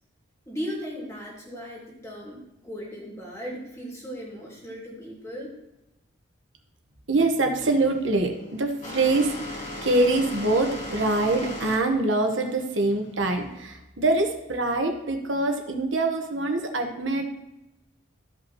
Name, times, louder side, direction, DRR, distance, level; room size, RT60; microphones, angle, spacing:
voice 1, 0.5-5.5, equal, 15° left, -4 dB, 2.3 m, -37 dB
voice 2, 7.1-17.3, right 2 dB, 70° right, 4 dB, 1.2 m, -24 dB
sound 1, 7.8-13.6, left 1 dB, 35° left, 1.5 m, -37 dB
14.0 x 5.4 x 3.0 m, 0.93 s
head